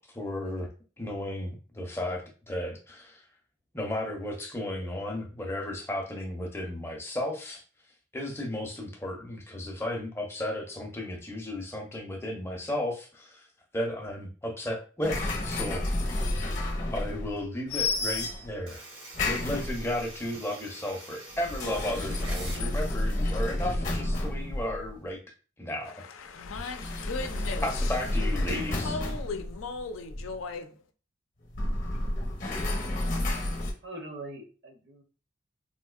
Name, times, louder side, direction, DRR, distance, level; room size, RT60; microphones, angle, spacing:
voice 1, 0.1-0.7 1.0-3.3 3.7-7.6 8.1-13.5 13.7-15.8 16.9-18.8 19.2-25.2 25.6-26.0 27.6-29.0, left 1 dB, 10° left, 0.5 m, -34 dB
sound 1, 15.0-17.4 17.7-18.6 19.1-20.1 21.3-25.0 26.4-30.4 31.5-33.7, left 1 dB, 40° left, 0.7 m, -31 dB
sound 2, 18.7-22.7, right 2 dB, 85° right, 1.3 m, -45 dB
voice 2, 25.8-28.0 28.4-30.7, left 4 dB, 85° left, 0.5 m, -38 dB
voice 3, 33.3-35.0, right 1 dB, 55° right, 0.6 m, -43 dB
3.7 x 2.6 x 2.3 m
head